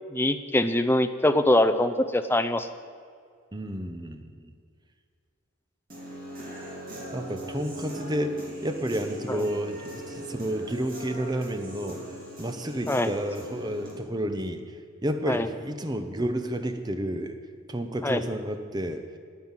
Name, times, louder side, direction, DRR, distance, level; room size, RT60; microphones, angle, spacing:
voice 1, 0.1-2.7 9.3-9.4 12.9-13.1 15.3-15.5 18.0-18.2, left 1 dB, 10° left, 9 dB, 0.5 m, -23 dB
voice 2, 3.5-4.5 7.1-12.0 12.4-14.6 15.0-17.4 17.7-19.0, right 1 dB, 20° right, 7 dB, 0.8 m, -31 dB
Human voice / Guitar, 5.9-13.9, right 1 dB, 40° right, 3.4 m, -40 dB
10.0 x 9.5 x 9.0 m, 2.2 s
head